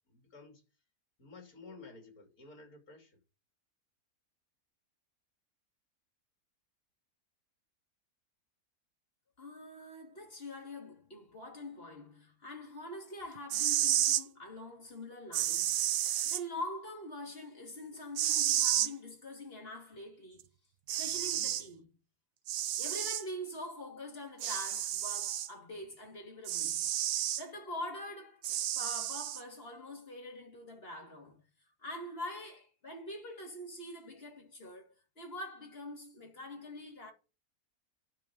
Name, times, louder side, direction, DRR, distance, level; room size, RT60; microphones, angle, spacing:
voice 1, 0.1-0.6 1.2-3.2, left 3 dB, 75° left, 3.3 m, -53 dB
voice 2, 9.4-15.7 16.2-20.5 20.9-21.9 22.8-28.4 28.7-31.4 31.8-37.1, left 1 dB, 40° left, 2.8 m, -44 dB
sound 1, 13.4-14.2 15.3-16.4 18.2-18.9 20.4-20.5 20.9-21.6 22.5-23.2 24.4-25.5 26.4-27.4 28.4-29.4, right 11 dB, 75° right, 1.1 m, -31 dB
10.0 x 4.7 x 7.2 m
omnidirectional pair, 1.6 m